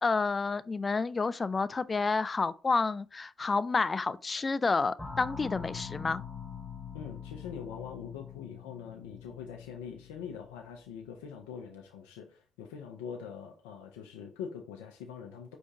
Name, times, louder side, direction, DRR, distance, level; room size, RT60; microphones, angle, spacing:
voice 1, 0.0-6.2, left 4 dB, 35° left, 0.3 m, -29 dB
sound 1, 5.0-11.3, left 6 dB, 15° left, 0.7 m, -44 dB
voice 2, 6.9-15.6, left 7 dB, 90° left, 0.6 m, -43 dB
4.9 x 2.6 x 3.3 m
hypercardioid pair, 55°, 0 cm